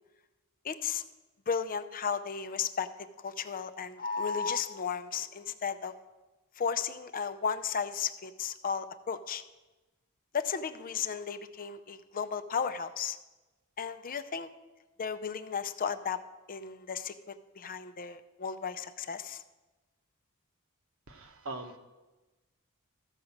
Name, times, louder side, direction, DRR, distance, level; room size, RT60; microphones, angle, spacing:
voice 1, 0.6-1.0 1.5-2.9 3.2-5.9 6.6-9.4 10.3-13.2 13.8-14.5 15.0-16.2 16.5-19.4, left 6 dB, 40° left, 11 dB, 0.5 m, -34 dB
voice 2, 21.1-21.8, right 2 dB, 65° right, 6 dB, 1.2 m, -41 dB
13.5 x 5.2 x 7.1 m, 1.1 s
head